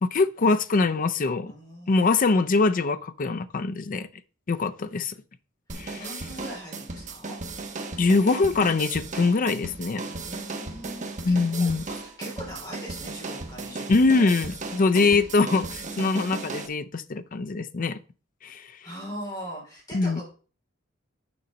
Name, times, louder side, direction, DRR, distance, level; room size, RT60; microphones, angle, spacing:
voice 1, 0.0-1.5 1.9-4.1 4.5-5.1 5.8-6.0 8.0-10.0 11.2-11.8 13.9-18.0 18.4-18.6 19.9-20.2, left 3 dB, 45° left, 0.5 m, -23 dB
voice 2, 1.5-2.1 6.0-7.3 10.0-11.7 12.0-14.3 18.8-20.2, equal, 20° left, 3.4 m, -41 dB
sound 1, 5.7-16.7, right 3 dB, 40° right, 1.1 m, -36 dB
6.9 x 5.0 x 5.2 m
head